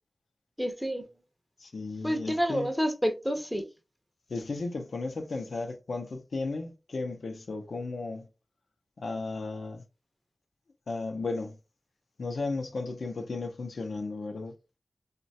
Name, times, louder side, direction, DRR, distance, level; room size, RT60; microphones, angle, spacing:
voice 1, 0.6-1.0 2.0-3.6, equal, ahead, 0.5 m, -29 dB
voice 2, 1.6-2.7 4.3-8.3 9.0-9.8 10.9-11.5 12.2-14.5, left 3 dB, 80° left, 0.5 m, -34 dB
3.0 x 2.2 x 2.6 m
wide cardioid pair, 60°, 0 cm